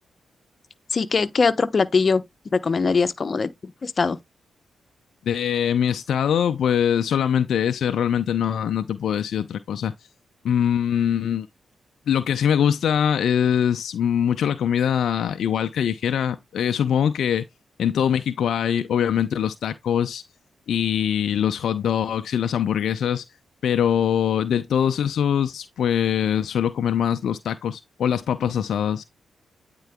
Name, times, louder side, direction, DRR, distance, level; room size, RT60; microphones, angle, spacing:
voice 1, 0.9-2.2 2.5-4.2, left 4 dB, 50° left, 0.9 m, -21 dB
voice 2, 5.3-9.9 10.4-11.5 12.1-17.4 17.8-20.2 20.7-23.2 23.6-29.0, left 9 dB, 75° left, 0.5 m, -23 dB
9.1 x 3.8 x 3.5 m
supercardioid pair, 50°, 0 cm